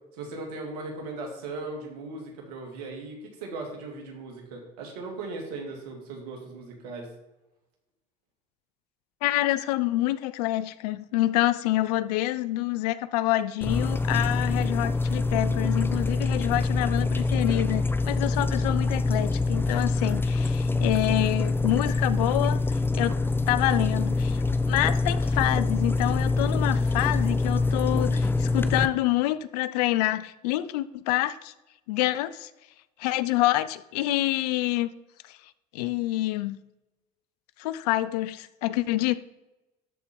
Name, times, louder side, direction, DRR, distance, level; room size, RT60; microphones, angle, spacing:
voice 1, 0.1-7.1, right 3 dB, 85° right, 2 dB, 2.5 m, -38 dB
voice 2, 9.2-23.2 23.5-31.5 31.9-32.5 33.0-34.9 35.3-35.4 35.7-36.6 37.6-39.1, left 16 dB, 85° left, 16 dB, 0.5 m, -27 dB
sound 1, 13.6-28.9, left 3 dB, 10° left, 0.6 m, -25 dB
12.5 x 4.4 x 5.2 m, 0.98 s
supercardioid pair, 80°, 20 cm